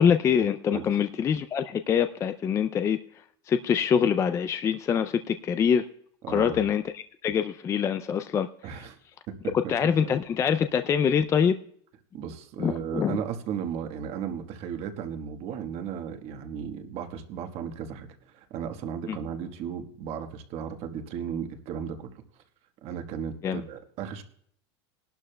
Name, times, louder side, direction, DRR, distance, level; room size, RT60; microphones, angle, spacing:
voice 1, 0.0-3.0 3.5-5.9 6.3-8.9 9.7-11.6 12.6-13.2 19.1-19.2 23.4-23.6, left 7 dB, 20° left, 10 dB, 0.3 m, -25 dB
voice 2, 6.2-6.6 8.6-9.0 9.4-9.5 12.1-22.1 22.8-24.2, right 8 dB, 45° right, 7 dB, 1.3 m, -35 dB
19.5 x 11.5 x 2.2 m, 0.63 s
supercardioid pair, 135°, 14 cm